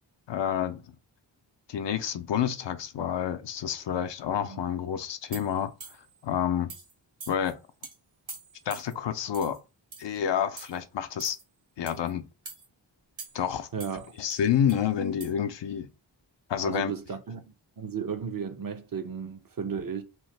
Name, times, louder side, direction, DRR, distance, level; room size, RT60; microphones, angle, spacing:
voice 1, 0.3-0.8 1.7-5.7 6.2-6.7 7.3-7.6 8.7-9.6 10.0-11.4 11.8-12.2 13.3-13.7 14.2-15.9 16.5-16.9, left 8 dB, 65° left, 0.5 m, -28 dB
sound 1, 5.3-6.2 6.7-6.9 7.2-7.5 7.8-7.9 8.3-8.9 9.3-9.6 9.9-10.2 10.6-10.8 11.2-11.4 11.9-12.1 12.5-12.7 13.2-13.5 13.8-14.8 15.2-15.3, right 4 dB, 75° right, 1.6 m, -44 dB
voice 2, 13.7-14.1 16.6-17.4 17.8-20.0, right 6 dB, 45° right, 0.6 m, -34 dB
3.0 x 2.0 x 3.2 m
cardioid pair, 45°, 47 cm